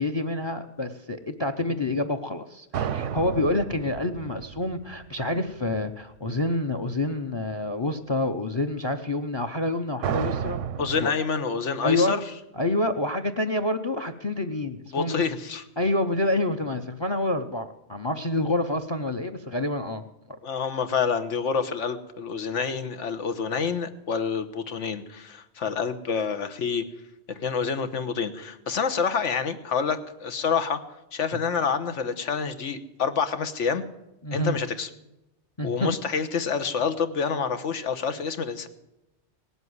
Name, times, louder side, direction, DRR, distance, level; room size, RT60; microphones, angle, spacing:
voice 1, 0.0-10.6 11.0-11.1 11.8-12.1 12.6-15.3 15.8-20.4 34.2-34.6 35.6-35.9, left 2 dB, 30° left, 10 dB, 0.6 m, -27 dB
sound 1, 2.7-5.8 10.0-11.1, right 8 dB, 85° right, 1.0 m, -32 dB
voice 2, 10.8-12.2 14.9-15.6 20.4-26.8 27.3-30.8 31.1-33.8 34.3-34.9 35.6-38.7, left 6 dB, 85° left, 9 dB, 1.4 m, -27 dB
18.0 x 8.2 x 9.5 m, 0.94 s
omnidirectional pair, 1.2 m